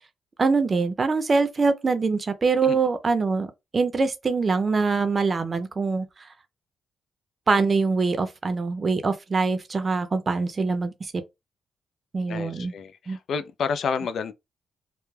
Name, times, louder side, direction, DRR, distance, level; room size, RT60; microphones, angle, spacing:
voice 1, 0.4-6.1 7.5-11.2 12.1-12.7 13.1-13.2, right 4 dB, 40° right, 0.5 m, -24 dB
voice 2, 12.3-14.3, left 6 dB, 70° left, 0.3 m, -30 dB
2.2 x 2.1 x 3.2 m
cardioid pair, 85°, 0 cm